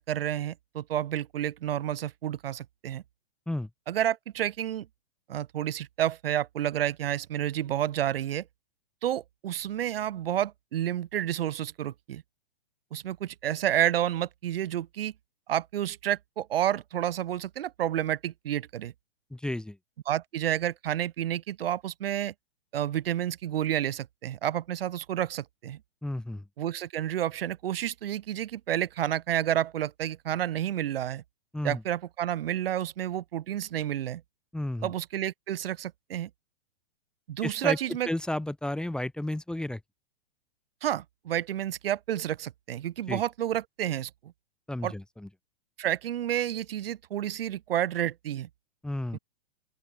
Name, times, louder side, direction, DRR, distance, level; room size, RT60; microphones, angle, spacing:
voice 1, 0.0-3.0 3.9-4.9 5.3-8.4 9.0-12.2 12.9-15.1 15.5-18.9 20.1-22.3 22.7-25.8 26.6-31.2 31.6-34.2 34.8-36.3 37.3-38.1 40.8-44.1 44.8-44.9 45.8-48.5, right 11 dB, 65° right, 2.6 m, -30 dB
voice 2, 19.3-19.8 26.0-26.5 31.5-31.8 34.5-34.9 37.4-37.8 38.1-39.8 43.1-43.2 44.7-45.3 48.8-49.2, left 1 dB, 5° left, 1.8 m, -32 dB
open air
hypercardioid pair, 140°, 31 cm